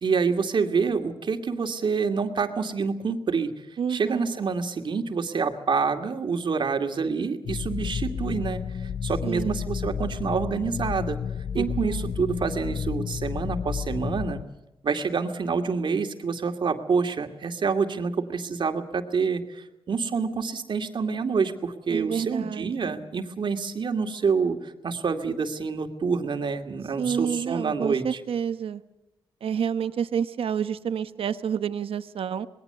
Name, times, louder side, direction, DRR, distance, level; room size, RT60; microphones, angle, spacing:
voice 1, 0.0-3.5 3.9-11.2 11.5-14.4 14.8-28.2, right 5 dB, 55° right, 6 dB, 2.4 m, -27 dB
voice 2, 3.8-4.3 9.2-9.6 11.6-12.1 21.9-23.0 27.0-28.8 29.4-32.5, right 7 dB, 80° right, 12 dB, 1.0 m, -29 dB
sound 1, 7.4-14.4, left 7 dB, 75° left, 0.7 m, -31 dB
26.5 x 20.5 x 6.9 m, 0.94 s
cardioid pair, 100°, 9 cm